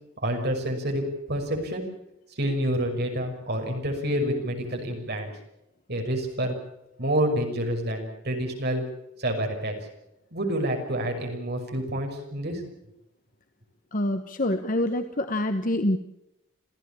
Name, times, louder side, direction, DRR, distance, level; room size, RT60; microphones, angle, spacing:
voice 1, 0.2-1.9 2.3-5.3 5.9-6.6 7.0-8.8 9.2-9.7 10.3-12.6, equal, 55° right, 3 dB, 6.0 m, -28 dB
voice 2, 13.9-16.0, left 1 dB, 40° left, 8 dB, 1.1 m, -26 dB
27.0 x 15.5 x 8.7 m, 0.85 s
head